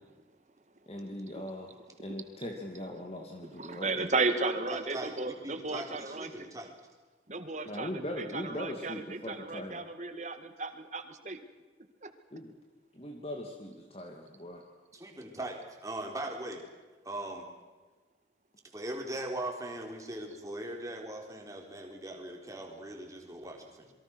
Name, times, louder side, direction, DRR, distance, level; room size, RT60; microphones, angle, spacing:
voice 1, 0.9-1.7 2.0-4.1 7.6-9.8 12.3-12.5 12.9-14.6, left 1 dB, 35° left, 2 dB, 2.4 m, -40 dB
voice 2, 3.5-6.5 7.3-11.4 12.0-12.1, right 3 dB, 40° right, 8 dB, 1.9 m, -34 dB
voice 3, 4.4-6.7 14.9-16.6 17.0-17.5 18.7-23.9, right 1 dB, 20° right, 2 dB, 4.1 m, -40 dB
27.5 x 23.0 x 6.3 m, 1.3 s
head